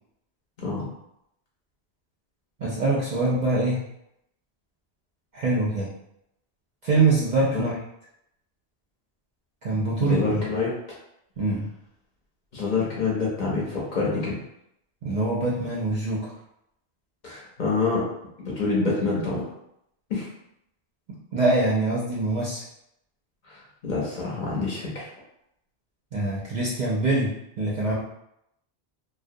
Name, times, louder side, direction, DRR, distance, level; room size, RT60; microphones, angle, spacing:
voice 1, 2.6-3.8 5.3-5.9 6.8-7.7 9.6-10.4 11.4-11.6 15.0-16.3 21.3-22.6 26.1-27.3 27.6-27.9, right 2 dB, 55° right, -6 dB, 0.5 m, -24 dB
voice 2, 9.7-10.7 12.5-14.4 17.2-18.0 18.4-19.5 20.1-20.3 23.4-25.1, left 4 dB, 50° left, -5 dB, 0.7 m, -27 dB
2.3 x 2.1 x 2.6 m, 0.79 s
omnidirectional pair, 1.1 m